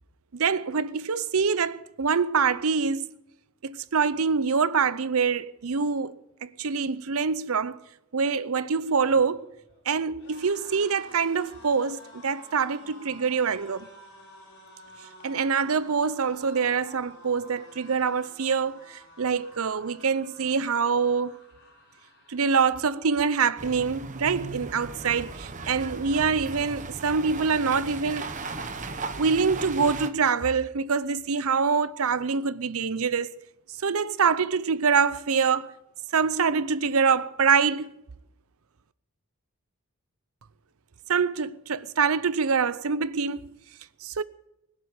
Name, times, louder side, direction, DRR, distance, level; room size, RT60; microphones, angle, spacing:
voice 1, 0.3-3.1 3.6-6.1 6.4-7.8 8.1-9.5 9.9-13.9 15.2-21.4 22.3-28.3 29.2-33.3 33.8-35.7 36.1-37.9 41.1-43.4 44.0-44.2, right 5 dB, 80° right, 0.7 m, -25 dB
sound 1, 8.7-23.9 24.3-24.5 24.8-25.6, left 2 dB, 55° left, 5.6 m, -51 dB
sound 2, 23.6-30.1, right 3 dB, 35° right, 1.0 m, -37 dB
20.5 x 7.5 x 9.2 m
head